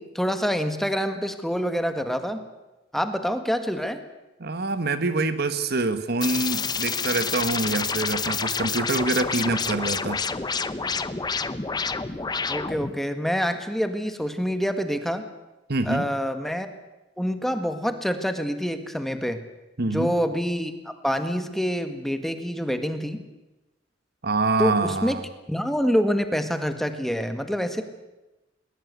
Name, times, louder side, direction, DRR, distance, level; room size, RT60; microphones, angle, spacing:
voice 1, 0.0-2.4 2.9-4.0 12.5-15.2 15.8-16.7 17.2-19.4 19.9-23.2 24.6-25.1 25.5-27.8, equal, ahead, 8 dB, 1.6 m, -26 dB
voice 2, 4.4-10.2 15.7-16.1 19.8-20.1 24.2-25.2, right 3 dB, 60° right, 12 dB, 1.4 m, -25 dB
sound 1, 6.2-12.9, left 5 dB, 25° left, 0.9 m, -28 dB
21.0 x 20.0 x 8.2 m, 1.0 s
head